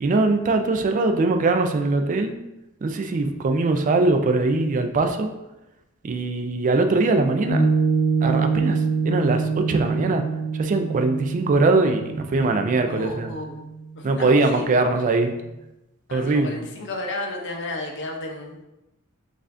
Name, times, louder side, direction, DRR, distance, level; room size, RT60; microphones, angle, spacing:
voice 1, 0.0-2.3 2.8-5.3 6.0-7.7 8.2-8.8 9.1-10.2 10.5-13.3 14.0-15.4 16.1-16.6, right 3 dB, 35° right, 6 dB, 0.3 m, -21 dB
Piano, 7.5-14.2, right 4 dB, 90° left, 0.8 m, -25 dB
voice 2, 12.9-13.6 14.0-14.7 16.1-18.6, left 2 dB, 55° left, 2 dB, 0.6 m, -33 dB
5.4 x 2.4 x 2.5 m, 0.95 s
head